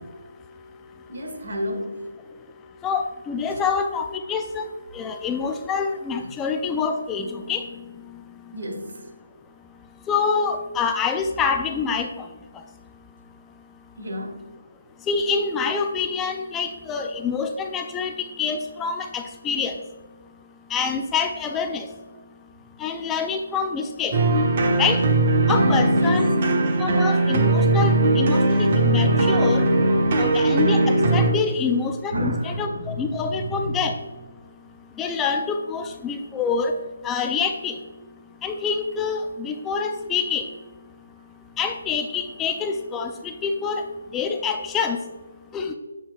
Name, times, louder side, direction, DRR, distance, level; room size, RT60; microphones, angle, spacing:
voice 1, 1.1-2.0 8.5-8.9 14.0-14.4 26.0-26.2 30.0-30.3 32.1-33.8, equal, 65° right, 2 dB, 1.9 m, -30 dB
voice 2, 2.8-4.6 4.9-7.6 10.1-12.3 15.1-19.8 20.7-21.9 22.8-24.2 24.8-25.0 25.5-26.4 26.8-29.7 30.1-33.9 35.0-36.8 37.0-37.8 38.4-40.5 41.6-43.8 44.1-45.0 45.5-45.8, left 5 dB, 10° left, 5 dB, 0.4 m, -26 dB
sound 1, 24.1-31.3, right 2 dB, 45° right, 1.2 m, -19 dB
8.6 x 6.3 x 2.3 m, 1.3 s
figure-of-eight pair, 160°, 0 cm